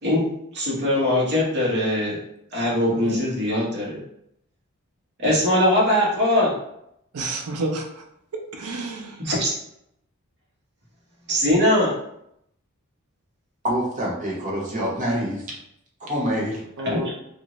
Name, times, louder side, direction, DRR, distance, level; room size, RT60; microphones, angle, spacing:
voice 1, 0.5-2.2 2.5-4.0 5.2-6.6 9.2-9.5 11.3-11.9 16.8-17.1, left 1 dB, 50° right, -5 dB, 1.2 m, -21 dB
voice 2, 7.1-8.0 8.3-9.2 16.8-17.1, right 2 dB, 85° right, 2 dB, 0.6 m, -30 dB
voice 3, 13.6-15.5 16.0-16.6, equal, 35° right, -3 dB, 0.9 m, -26 dB
2.6 x 2.5 x 3.0 m, 0.77 s
head